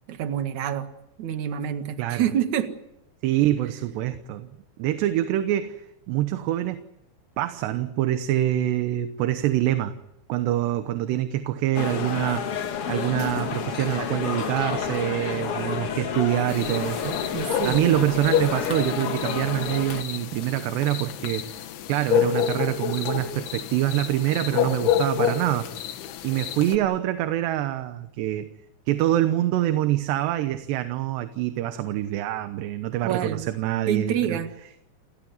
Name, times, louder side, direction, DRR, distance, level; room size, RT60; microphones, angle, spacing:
voice 1, 0.1-0.9 1.2-2.7 17.3-17.9 33.0-33.5 33.9-34.5, right 9 dB, 55° right, 8 dB, 2.5 m, -27 dB
voice 2, 3.2-4.5 4.8-5.8 6.1-6.8 7.4-10.0 10.3-12.4 12.9-17.2 17.6-21.5 21.9-25.7 26.2-28.5 28.9-34.4, right 13 dB, 75° right, 9 dB, 3.1 m, -25 dB
sound 1, 11.7-20.0, left 7 dB, 65° left, 1.4 m, -30 dB
sound 2, 16.5-26.8, left 10 dB, 90° left, 3.8 m, -28 dB
29.0 x 16.5 x 9.6 m, 0.84 s
omnidirectional pair, 5.2 m